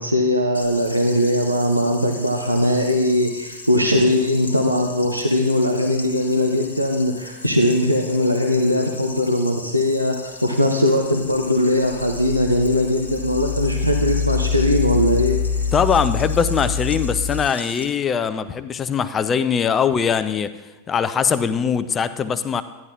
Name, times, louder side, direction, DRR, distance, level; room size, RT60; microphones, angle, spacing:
voice 1, 0.0-15.4, left 1 dB, 90° right, 2 dB, 0.6 m, -20 dB
sound 1, 0.5-17.8, left 2 dB, 75° left, 1.0 m, -38 dB
sound 2, 11.0-17.4, left 5 dB, 50° left, 1.2 m, -25 dB
voice 2, 15.7-20.5 20.9-22.6, left 7 dB, 25° left, 12 dB, 0.5 m, -21 dB
12.0 x 9.9 x 2.5 m, 1.1 s
figure-of-eight pair, 90°, 0 cm